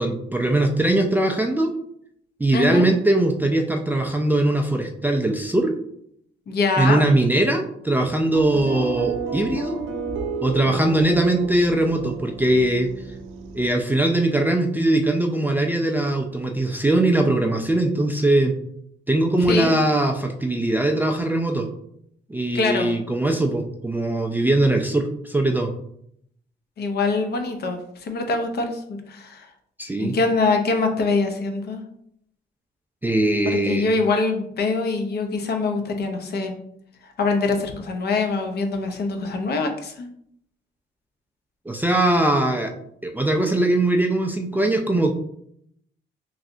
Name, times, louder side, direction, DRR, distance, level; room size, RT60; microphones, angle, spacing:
voice 1, 0.0-1.7 2.4-5.7 6.8-9.8 10.4-12.9 13.5-18.5 19.1-21.7 22.3-25.7 29.8-30.1 33.0-33.9 41.7-42.7 43.0-45.1, right 1 dB, 10° right, 2 dB, 0.3 m, -21 dB
voice 2, 2.5-2.9 6.5-7.0 8.5-8.7 19.5-19.7 22.5-22.9 26.8-28.8 29.1-29.5 30.0-31.8 33.5-36.5 37.0-40.1, left 3 dB, 55° left, 4 dB, 0.6 m, -24 dB
sound 1, 8.3-13.7, right 4 dB, 80° right, 0.5 m, -32 dB
3.1 x 2.7 x 2.5 m, 0.71 s
cardioid pair, 90°, 20 cm